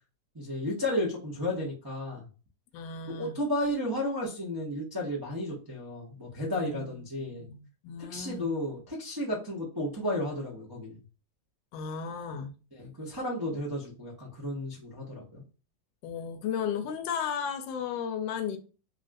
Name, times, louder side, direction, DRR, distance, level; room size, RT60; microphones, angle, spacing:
voice 1, 0.3-2.3 3.1-7.5 8.1-11.0 12.7-15.4, left 1 dB, 35° right, 0.3 m, -33 dB
voice 2, 2.7-3.4 6.5-6.8 7.3-8.5 11.7-12.5 16.0-18.6, left 7 dB, 85° left, 1.3 m, -34 dB
3.4 x 2.4 x 2.5 m
omnidirectional pair, 1.9 m